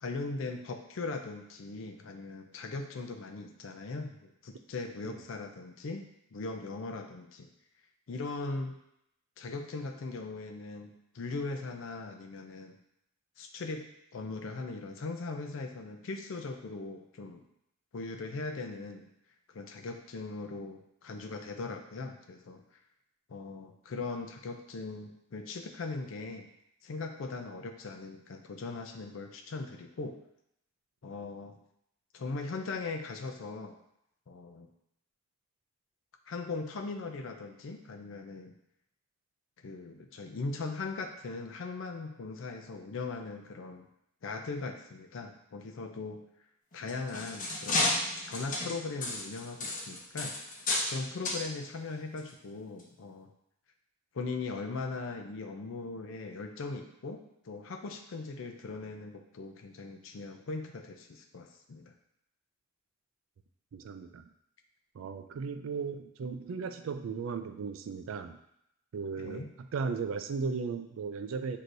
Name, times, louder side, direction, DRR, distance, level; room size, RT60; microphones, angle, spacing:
voice 1, 0.0-7.5 8.1-8.7 9.4-12.8 13.4-17.4 17.9-19.1 19.5-22.6 23.3-26.5 26.8-30.2 31.0-31.6 32.1-33.8 34.3-34.7 36.3-38.6 39.6-43.9 44.2-46.2 46.7-48.0 48.2-50.3 50.9-53.3 54.1-61.9 69.2-69.5, left 3 dB, 70° left, 5 dB, 0.5 m, -39 dB
sound 1, 46.7-51.0 51.2-51.4 52.2-52.3 52.8-52.9, left 2 dB, 40° left, 0.7 m, -32 dB
voice 2, 63.7-64.2 64.9-68.4 68.9-71.6, right 5 dB, 75° right, 9 dB, 0.4 m, -36 dB
6.2 x 2.8 x 2.6 m, 0.78 s
head